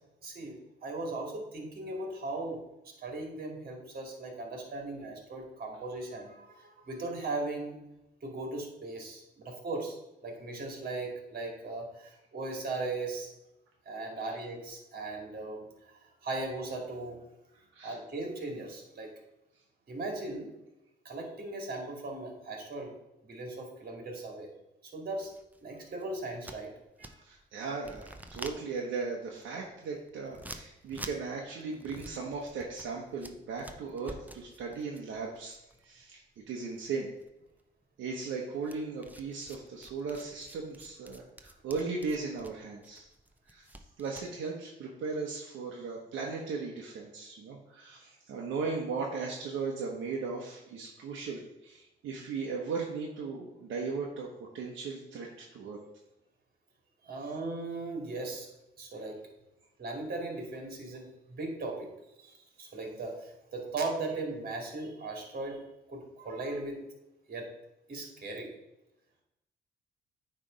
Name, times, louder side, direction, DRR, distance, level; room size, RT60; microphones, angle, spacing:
voice 1, 0.2-2.6 3.0-7.7 8.2-10.0 10.2-13.3 13.9-17.2 17.8-19.1 19.9-20.5 21.0-23.0 23.3-24.5 24.8-25.3 25.6-26.7 27.0-27.2 57.0-58.5 58.8-59.2 59.8-61.9 62.2-65.6 65.9-66.8 67.3-67.5 67.9-68.5, right 2 dB, 50° right, 1 dB, 2.3 m, -38 dB
sound 1, 25.2-27.4 27.8-36.5 36.8-37.6 38.6-44.3, right 1 dB, 10° right, 0.7 m, -49 dB
voice 2, 27.2-35.6 35.8-36.2 36.5-37.1 38.0-43.1 43.5-43.7 44.0-54.3 54.5-55.8 57.2-57.3, right 4 dB, 75° right, -1 dB, 1.1 m, -37 dB
8.9 x 3.4 x 5.1 m, 0.93 s
cardioid pair, 90°, 20 cm